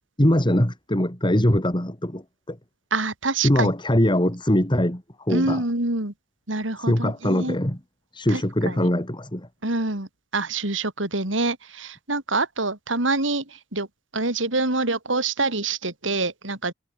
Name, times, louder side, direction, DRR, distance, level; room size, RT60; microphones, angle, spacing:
voice 1, 0.2-2.6 3.4-5.0 5.3-5.6 6.9-7.8 8.1-9.5, left 1 dB, 25° left, 3.1 m, -22 dB
voice 2, 2.9-3.7 5.3-6.1 6.5-7.6 8.3-8.9 9.6-13.9 14.1-16.7, right 3 dB, 70° right, 4.1 m, -26 dB
head